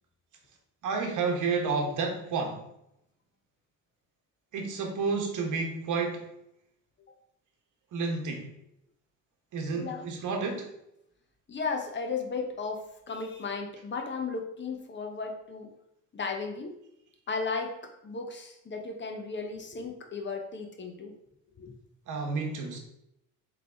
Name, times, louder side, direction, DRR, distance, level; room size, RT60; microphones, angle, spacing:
voice 1, 0.8-2.6 4.5-6.3 7.9-8.5 9.5-10.7 22.1-22.8, right 4 dB, 55° right, 3 dB, 1.1 m, -30 dB
voice 2, 9.7-10.1 11.5-15.7 16.1-16.8 17.3-21.1 21.6-21.7, left 4 dB, 30° left, 4 dB, 0.9 m, -35 dB
3.7 x 3.4 x 3.6 m, 0.79 s
supercardioid pair, 75°, 35 cm